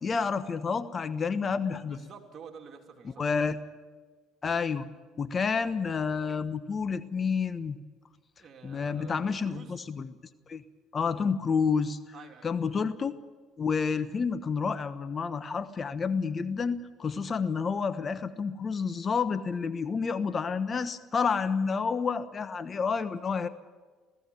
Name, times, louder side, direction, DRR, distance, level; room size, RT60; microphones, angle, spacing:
voice 1, 0.0-2.0 3.2-3.6 4.4-4.9 5.2-7.8 8.6-10.2 10.5-10.6 10.9-12.0 12.4-13.1 13.6-23.5, left 5 dB, 40° left, 12 dB, 1.2 m, -29 dB
voice 2, 1.8-3.3 8.4-9.8 12.1-12.5, right 6 dB, 50° right, 2 dB, 3.2 m, -49 dB
18.5 x 15.5 x 9.6 m, 1.4 s
supercardioid pair, 75°, 0 cm